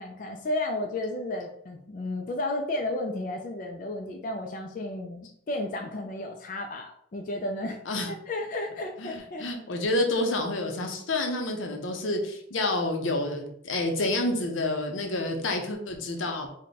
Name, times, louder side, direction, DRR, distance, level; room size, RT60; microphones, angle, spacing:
voice 1, 0.0-7.8 8.1-9.4, left 2 dB, 45° left, 3 dB, 0.3 m, -33 dB
voice 2, 9.0-16.5, left 2 dB, 90° left, 3 dB, 0.7 m, -29 dB
3.4 x 2.1 x 3.9 m, 0.70 s
head